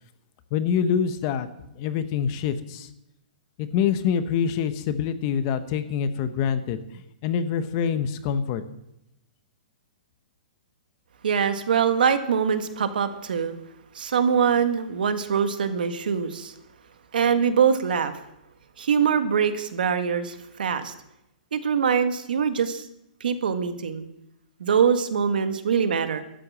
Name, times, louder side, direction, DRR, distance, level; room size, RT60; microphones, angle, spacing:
voice 1, 0.5-1.5 1.8-2.9 3.6-6.8 7.2-8.6, left 7 dB, 25° left, 11 dB, 0.8 m, -25 dB
voice 2, 11.2-13.5 13.9-16.5 17.1-18.1 18.8-20.9 21.5-22.8 23.2-24.1 24.6-26.2, right 7 dB, 75° right, 9 dB, 1.7 m, -23 dB
13.0 x 7.7 x 8.6 m, 0.83 s
hypercardioid pair, 175°, 5 cm